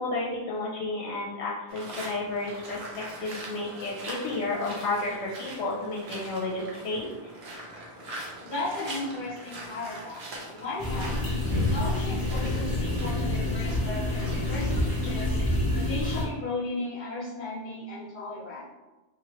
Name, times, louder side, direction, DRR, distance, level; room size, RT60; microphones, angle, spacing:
voice 1, 0.0-7.1, left 2 dB, 80° left, -5 dB, 0.9 m, -32 dB
sound 1, 1.7-15.4, right 1 dB, 65° right, 1.0 m, -42 dB
voice 2, 8.4-11.2 11.6-15.4 15.7-18.7, left 2 dB, 45° left, -5 dB, 1.0 m, -35 dB
sound 2, 10.8-16.2, left 2 dB, 20° left, 0.7 m, -27 dB
2.9 x 2.9 x 2.9 m, 1.1 s
omnidirectional pair, 1.2 m